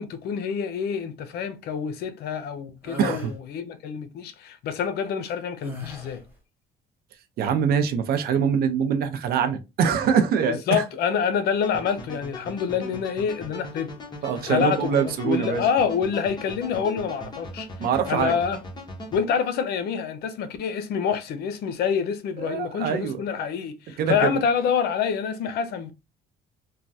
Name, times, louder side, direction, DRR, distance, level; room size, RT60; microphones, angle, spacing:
voice 1, 0.0-6.2 10.5-13.9 14.4-17.7 18.1-18.6 19.1-25.9, left 7 dB, 70° left, 0.6 m, -27 dB
sound 1, 2.8-3.3 5.6-6.3, left 1 dB, 10° right, 1.0 m, -38 dB
voice 2, 3.0-3.3 7.4-10.8 14.2-15.6 17.8-18.3 22.4-23.2 24.0-24.3, right 7 dB, 65° right, 0.6 m, -23 dB
sound 2, 11.6-19.2, left 1 dB, 25° left, 1.1 m, -39 dB
3.2 x 2.2 x 2.6 m
cardioid pair, 110°, 17 cm